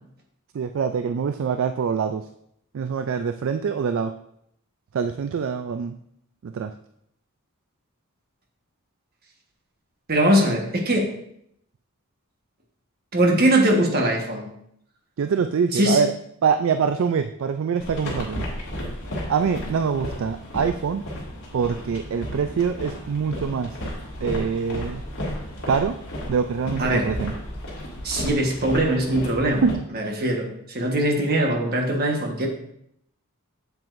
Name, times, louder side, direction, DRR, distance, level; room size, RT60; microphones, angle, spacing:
voice 1, 0.5-2.3 2.7-4.1 4.9-6.0 6.4-6.7 15.2-16.1 16.4-18.5 19.3-21.0 21.5-23.8 24.2-25.0 25.7-26.0 26.3-27.3 29.6-29.8, right 6 dB, 60° right, 9 dB, 0.3 m, -24 dB
voice 2, 10.1-11.1 13.1-14.5 15.7-16.0 26.8-27.1 28.0-29.6 29.9-32.5, right 1 dB, 45° right, 1 dB, 1.3 m, -21 dB
sound 1, 17.8-29.7, equal, 55° left, 2.2 m, -33 dB
7.6 x 7.4 x 2.6 m, 0.73 s
head